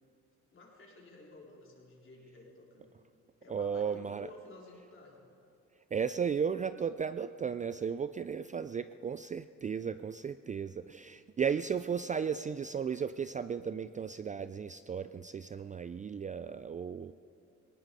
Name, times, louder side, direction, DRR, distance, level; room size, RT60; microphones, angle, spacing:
voice 1, 0.5-2.9 3.4-5.2, left 3 dB, 45° left, -3 dB, 4.3 m, -53 dB
voice 2, 3.5-4.3 5.9-17.1, right 7 dB, 25° right, 12 dB, 0.3 m, -35 dB
19.0 x 18.0 x 4.2 m, 2.6 s
cardioid pair, 90°, 30 cm